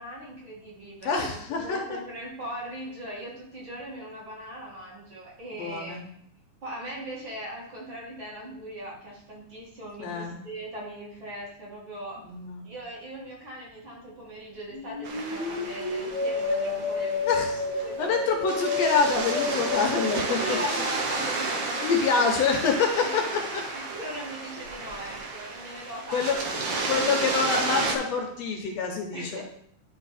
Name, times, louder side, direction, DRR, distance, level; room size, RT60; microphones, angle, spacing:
voice 1, 0.0-6.0 6.6-12.3 12.6-17.5 17.8-18.2 18.5-18.7 20.4-22.2 23.0-23.2 23.7-28.0 29.1-29.4, equal, 45° right, -5 dB, 2.5 m, -40 dB
voice 2, 1.1-1.8 5.5-6.0 10.0-10.4 12.2-12.6 17.3-17.6 18.0-20.6 21.8-23.2 26.1-26.4 26.9-29.4, left 5 dB, 70° left, 2 dB, 1.9 m, -26 dB
sound 1, 14.7-21.2, left 3 dB, 55° left, 0.5 m, -30 dB
sound 2, 15.0-28.0, right 3 dB, 85° right, 1.0 m, -32 dB
10.5 x 3.8 x 4.1 m, 0.67 s
omnidirectional pair, 3.3 m